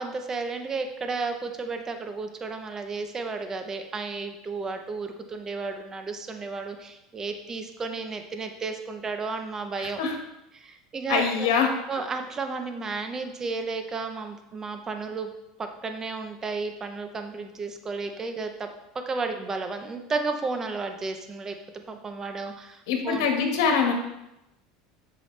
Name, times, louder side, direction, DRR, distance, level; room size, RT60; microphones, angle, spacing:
voice 1, 0.0-10.0 10.5-11.5 11.9-15.3 15.6-18.7 19.1-23.3, right 4 dB, 25° right, 6 dB, 0.9 m, -33 dB
voice 2, 9.8-10.1 11.1-11.7 22.9-23.9, left 6 dB, 80° left, 2 dB, 1.6 m, -24 dB
8.1 x 6.1 x 3.4 m, 0.89 s
supercardioid pair, 115°, 2 cm